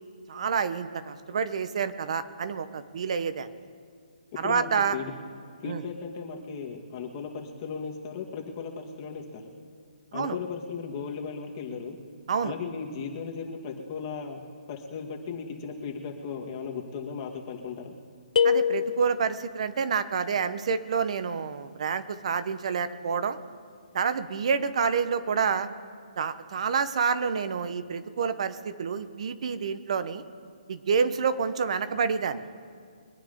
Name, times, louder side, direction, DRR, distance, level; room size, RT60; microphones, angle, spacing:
voice 1, 0.3-3.5 4.4-5.0 5.6-5.8 10.1-10.4 12.3-12.5 18.4-23.4 23.9-25.7 26.2-30.2 30.7-32.5, right 6 dB, 50° right, 12 dB, 1.0 m, -28 dB
voice 2, 4.4-5.1 5.6-9.5 10.1-12.0 12.4-14.4 14.7-17.9, left 5 dB, 30° left, 0 dB, 2.0 m, -36 dB
sound 1, 18.4-19.5, left 7 dB, 60° left, 0.4 m, -25 dB
23.0 x 9.3 x 5.3 m, 2.3 s
hypercardioid pair, 160°, 4 cm